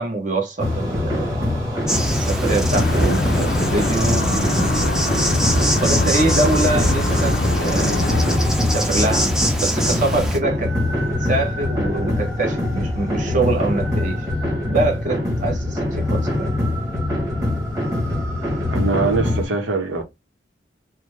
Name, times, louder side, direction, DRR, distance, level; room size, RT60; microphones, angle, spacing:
voice 1, 0.0-1.4 2.1-5.1 5.8-8.1 8.6-10.7 11.2-14.2 14.6-16.5, right 2 dB, 40° right, 1.0 m, -24 dB
sound 1, 0.6-19.4, left 1 dB, 20° right, 1.5 m, -23 dB
Insect, 1.9-10.4, equal, 5° right, 0.5 m, -23 dB
sound 2, 2.7-8.4, left 2 dB, 55° left, 0.5 m, -26 dB
voice 2, 2.9-3.5 18.7-20.0, right 3 dB, 80° right, 1.0 m, -24 dB
3.7 x 2.1 x 3.1 m
head